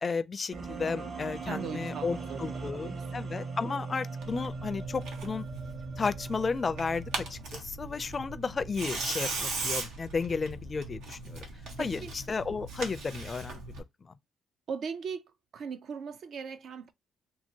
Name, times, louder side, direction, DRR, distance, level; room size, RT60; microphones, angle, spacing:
voice 1, 0.0-5.4 6.0-7.0 7.3-11.4 11.8-13.6, left 4 dB, 35° left, 0.4 m, -33 dB
sound 1, 0.5-7.5, right 4 dB, 40° right, 1.0 m, -39 dB
voice 2, 1.4-3.0 11.5-12.1 14.7-15.2 15.5-16.9, right 6 dB, 65° right, 0.5 m, -39 dB
Tearing, 4.2-13.8, right 3 dB, 90° right, 0.9 m, -39 dB
2.8 x 2.7 x 2.7 m
cardioid pair, 90°, 0 cm